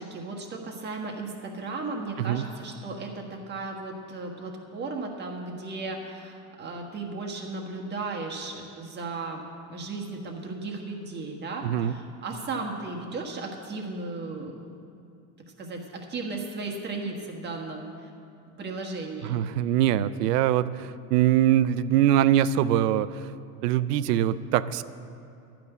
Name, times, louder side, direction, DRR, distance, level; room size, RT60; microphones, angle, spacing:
voice 1, 0.0-9.4 9.7-14.5 15.6-18.1 18.6-19.4, right 3 dB, 20° right, 1 dB, 1.4 m, -35 dB
voice 2, 11.6-11.9 19.3-23.3 23.6-24.8, right 11 dB, 85° right, 15 dB, 0.6 m, -23 dB
12.0 x 6.0 x 9.2 m, 2.6 s
supercardioid pair, 145°, 46 cm